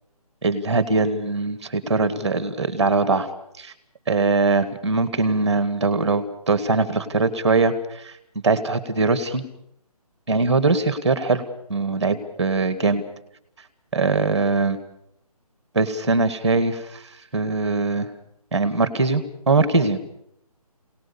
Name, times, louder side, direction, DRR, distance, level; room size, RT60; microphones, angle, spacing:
voice 1, 0.4-3.3 3.6-3.7 4.1-8.1 8.4-9.4 10.3-11.4 11.7-13.0 13.9-14.8 15.7-17.0 17.3-18.1 18.5-20.0, right 3 dB, ahead, 11 dB, 1.3 m, -21 dB
26.5 x 18.5 x 7.0 m, 0.74 s
hypercardioid pair, 175°, 20 cm